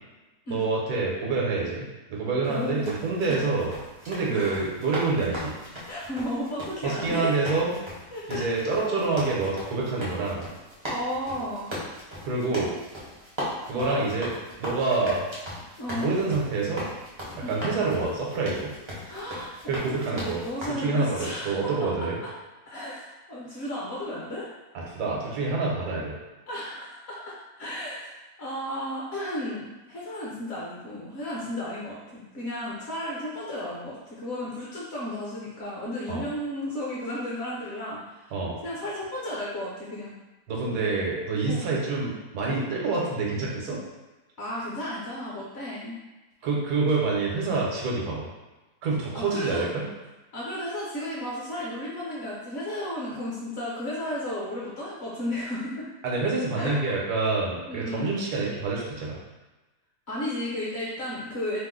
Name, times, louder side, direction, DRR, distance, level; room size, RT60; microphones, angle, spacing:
voice 1, 0.5-3.7 4.1-5.5 6.8-7.7 8.3-10.4 12.2-12.7 13.7-14.3 14.6-15.2 15.9-16.8 17.5-18.7 19.7-20.4 20.8-22.2 24.9-26.2 36.1-36.2 38.3-38.6 40.5-43.8 46.4-48.3 48.8-49.8 56.0-59.2, right 3 dB, 80° right, -3 dB, 1.3 m, -27 dB
sound 1, 2.4-20.7, equal, 35° right, 0.4 m, -38 dB
voice 2, 2.5-2.9 3.3-3.4 4.3-4.6 5.9-7.3 8.1-8.4 10.9-11.8 13.7-14.2 15.8-16.1 17.4-17.8 19.0-22.1 22.7-24.5 26.5-38.3 38.6-40.2 41.5-41.8 42.8-43.0 44.4-46.0 49.1-49.7 50.3-55.9 56.6-56.9 57.7-58.2 60.1-61.6, left 1 dB, 55° left, -6 dB, 0.8 m, -34 dB
2.9 x 2.0 x 3.6 m, 1.1 s
omnidirectional pair, 1.7 m